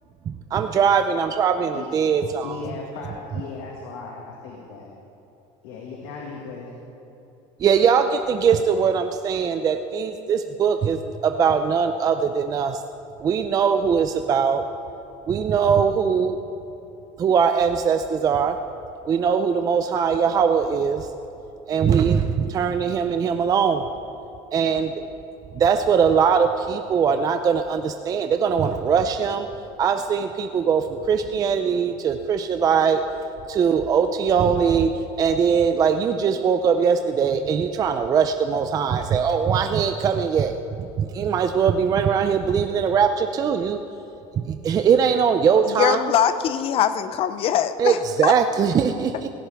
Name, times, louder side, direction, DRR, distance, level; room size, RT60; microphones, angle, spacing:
voice 1, 0.3-2.6 7.6-12.8 13.2-14.6 15.3-16.4 17.2-18.6 19.1-21.1 21.7-23.9 24.5-25.0 25.5-29.5 29.8-33.0 33.5-34.9 35.2-43.8 44.3-46.1 47.8-49.3, right 6 dB, 25° right, 7 dB, 0.4 m, -21 dB
voice 2, 2.4-4.9 5.6-6.7, left 4 dB, 90° left, -2 dB, 1.9 m, -37 dB
voice 3, 45.7-48.3, left 9 dB, 40° left, 12 dB, 0.6 m, -22 dB
16.5 x 16.5 x 3.5 m, 2.9 s
cardioid pair, 165°, 15 cm